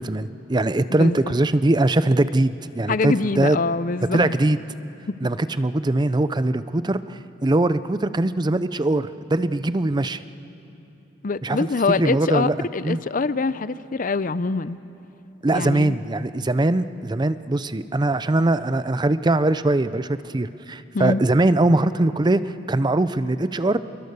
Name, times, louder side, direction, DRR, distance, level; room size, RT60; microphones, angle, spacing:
voice 1, 0.0-3.6 4.1-4.6 5.2-10.2 11.4-11.7 12.0-12.5 12.8-13.0 15.4-22.4 22.7-23.8, right 2 dB, 25° right, 13 dB, 0.5 m, -21 dB
voice 2, 0.9-1.3 2.9-4.4 5.1-5.2 11.2-14.8 15.5-16.0 20.9-21.2, left 3 dB, 45° left, 15 dB, 0.5 m, -24 dB
28.0 x 22.0 x 6.8 m, 2.8 s
head